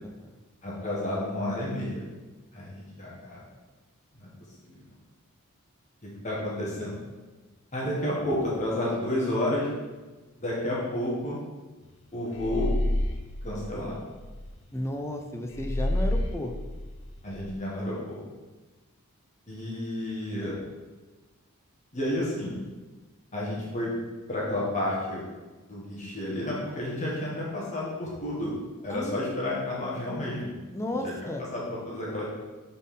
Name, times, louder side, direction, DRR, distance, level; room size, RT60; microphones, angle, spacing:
voice 1, 0.0-0.3 14.7-16.5 28.9-29.2 30.7-31.4, left 1 dB, 10° left, 3 dB, 0.6 m, -33 dB
voice 2, 0.6-2.0 2.5-3.4 4.2-4.3 4.6-4.7 6.0-7.0 7.7-9.7 10.4-11.4 12.1-12.7 13.4-14.0 17.2-18.2 19.5-20.6 21.9-22.6 23.3-23.9 24.3-25.2 25.6-28.6 28.8-30.5 31.0-32.3, left 1 dB, 35° left, -5 dB, 1.4 m, -31 dB
sound 1, 12.3-14.5 15.5-17.5, left 1 dB, 60° left, 0.7 m, -30 dB
5.5 x 4.3 x 5.4 m, 1.2 s
head